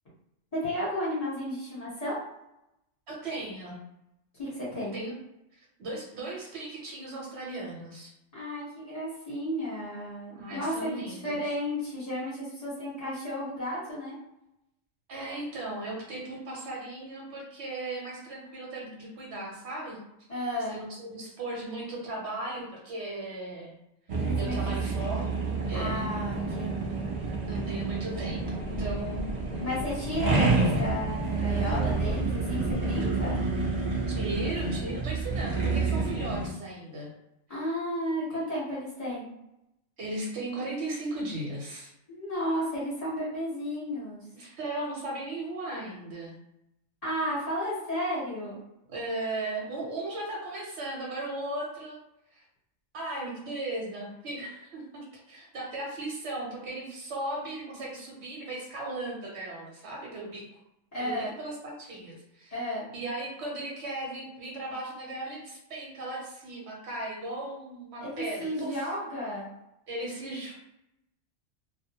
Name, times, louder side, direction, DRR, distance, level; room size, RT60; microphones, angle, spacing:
voice 1, 0.5-2.2 4.4-4.9 8.3-14.1 20.3-20.7 24.2-24.6 25.7-26.7 29.6-33.4 37.5-39.2 42.1-44.2 47.0-48.6 60.9-61.3 62.5-62.9 68.0-69.4, equal, 30° left, -9 dB, 1.1 m, -33 dB
voice 2, 3.1-3.8 4.9-5.2 5.6-8.1 10.3-11.4 15.1-20.0 20.7-23.8 24.4-25.3 25.6-26.0 27.4-29.3 34.1-37.1 40.0-41.9 44.3-46.3 48.9-52.0 52.3-52.4 52.9-60.5 61.0-62.5 62.9-68.8 69.9-70.6, right 2 dB, 60° right, -2 dB, 1.1 m, -37 dB
sound 1, 24.1-36.5, right 3 dB, 80° right, 0.3 m, -29 dB
2.4 x 2.1 x 2.8 m, 0.85 s
omnidirectional pair, 1.3 m